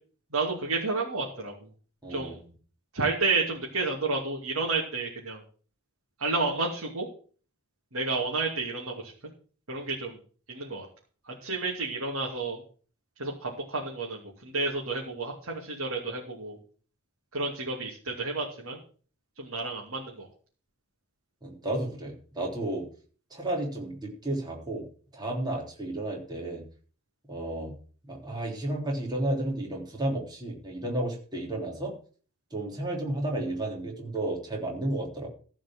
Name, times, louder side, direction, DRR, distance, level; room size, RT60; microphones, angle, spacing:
voice 1, 0.3-1.6 2.1-2.4 2.9-5.4 6.2-7.1 7.9-9.1 9.7-10.2 10.5-10.9 11.3-12.6 13.2-16.6 17.3-18.8 19.4-20.3, right 3 dB, 75° right, -2 dB, 2.7 m, -31 dB
voice 2, 2.0-2.4 21.4-22.8 23.3-24.8 25.1-26.6 27.3-27.7 28.1-31.9 32.5-35.3, right 1 dB, 20° right, -1 dB, 3.5 m, -32 dB
15.0 x 5.2 x 7.5 m, 0.42 s
head